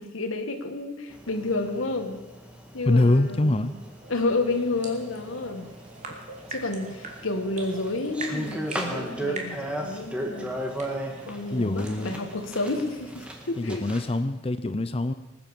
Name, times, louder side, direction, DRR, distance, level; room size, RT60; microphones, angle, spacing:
voice 1, 0.0-2.2 2.7-3.7 4.1-5.7 6.5-10.6 11.3-13.8, left 2 dB, 85° left, 5 dB, 1.4 m, -30 dB
sound 1, 1.1-14.2, right 1 dB, 5° right, 1.8 m, -37 dB
voice 2, 2.9-3.7 11.5-12.2 13.5-15.1, left 2 dB, 30° left, 12 dB, 0.6 m, -24 dB
sound 2, 3.6-13.1, right 2 dB, 35° right, 2.3 m, -43 dB
20.0 x 9.2 x 7.0 m, 1.1 s
head